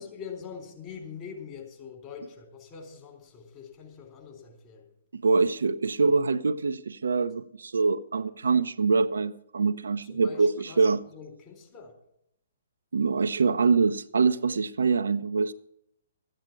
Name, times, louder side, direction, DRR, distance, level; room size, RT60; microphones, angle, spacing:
voice 1, 0.0-4.9 10.0-11.9, left 6 dB, 30° left, 3.7 m, -44 dB
voice 2, 5.1-11.0 12.9-15.5, right 4 dB, 75° right, 0.5 m, -24 dB
13.5 x 9.0 x 6.0 m
figure-of-eight pair, 125°, 0 cm